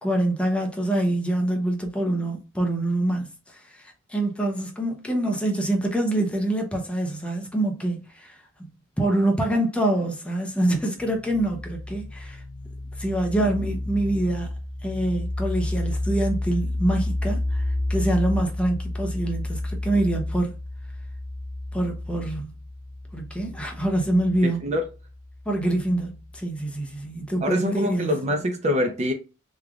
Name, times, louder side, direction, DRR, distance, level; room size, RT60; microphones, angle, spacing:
voice 1, 0.0-8.4 9.0-12.4 13.0-14.5 14.8-17.6 17.9-20.5 21.7-22.5 23.1-24.7 25.5-28.1, right 1 dB, 5° left, 0.7 m, -25 dB
sound 1, 11.0-26.4, left 1 dB, 45° left, 1.0 m, -31 dB
voice 2, 27.4-29.1, equal, 35° right, 0.6 m, -24 dB
3.6 x 3.2 x 2.3 m
head